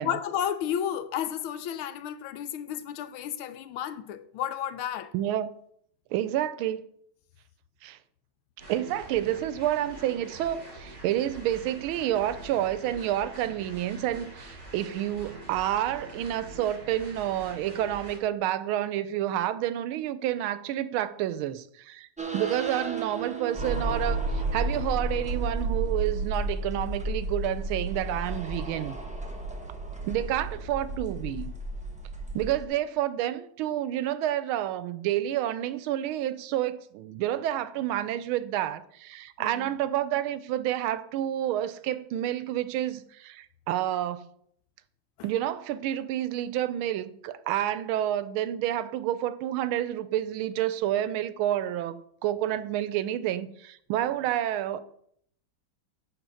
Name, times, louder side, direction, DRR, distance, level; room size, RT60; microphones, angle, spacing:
voice 1, 0.0-5.1 39.4-39.7, left 10 dB, 85° left, 1.5 m, -32 dB
voice 2, 5.1-5.5 6.1-6.8 7.8-8.0 8.7-22.1 22.3-29.0 30.1-31.5 32.3-44.3 45.2-54.8, right 12 dB, 85° right, 1.4 m, -29 dB
sound 1, 8.6-18.2, right 1 dB, 40° right, 4.7 m, -45 dB
sound 2, 22.2-32.6, right 2 dB, 10° right, 0.4 m, -32 dB
8.0 x 4.4 x 6.3 m
omnidirectional pair, 2.2 m